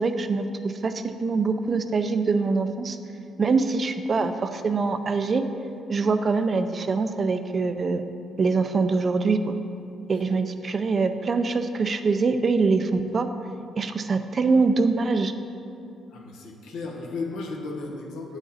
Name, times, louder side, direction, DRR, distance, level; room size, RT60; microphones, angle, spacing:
voice 1, 0.0-3.0 3.4-5.4 5.9-8.0 8.4-9.5 10.1-13.3 13.8-15.3, right 4 dB, 40° right, 9 dB, 0.4 m, -24 dB
voice 2, 16.1-18.4, left 3 dB, 85° left, 0 dB, 1.0 m, -34 dB
8.5 x 5.0 x 4.0 m, 2.6 s
cardioid pair, 90°, 0 cm